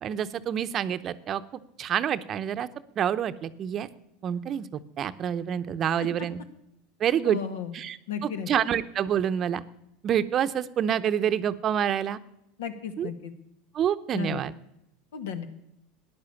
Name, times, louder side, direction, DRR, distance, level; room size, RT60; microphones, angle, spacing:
voice 1, 0.0-1.4 1.8-2.7 3.0-3.9 4.2-6.4 7.0-7.4 7.7-8.0 8.2-9.6 10.0-12.2 13.0-13.1 13.7-14.5, right 9 dB, 35° right, 12 dB, 0.7 m, -27 dB
voice 2, 7.2-7.8 8.1-8.5 12.6-13.3 14.1-14.4 15.1-15.5, left 7 dB, 90° left, 9 dB, 1.7 m, -34 dB
14.0 x 10.5 x 7.0 m, 0.81 s
supercardioid pair, 125°, 0 cm